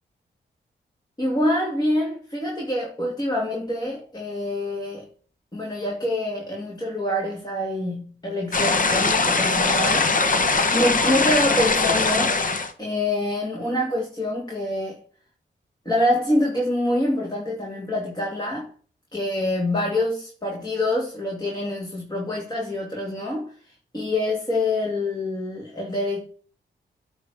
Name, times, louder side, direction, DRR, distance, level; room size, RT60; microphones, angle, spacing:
voice 1, 1.2-5.1 5.5-10.4 10.7-12.4 12.8-15.0 15.8-18.7 19.1-23.5 23.9-26.2, left 1 dB, 20° left, 2.4 m, -26 dB
sound 1, 8.5-12.7, left 3 dB, 45° left, 1.2 m, -21 dB
9.1 x 3.4 x 6.8 m
cardioid pair, 65°, 19 cm